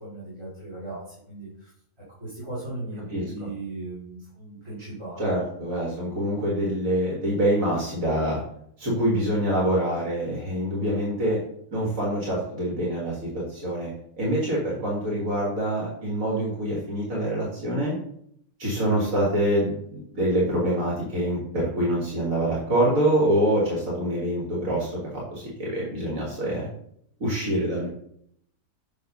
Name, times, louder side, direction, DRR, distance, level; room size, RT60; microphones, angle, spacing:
voice 1, 0.0-1.7 2.2-5.2, right 2 dB, 20° right, -9 dB, 2.4 m, -37 dB
voice 2, 3.1-3.5 5.2-8.4 8.8-11.4 11.7-13.9 14.2-18.0 18.6-26.7 27.2-27.9, right 1 dB, 70° right, -4 dB, 2.1 m, -25 dB
7.5 x 3.5 x 5.4 m, 0.70 s
omnidirectional pair, 1.5 m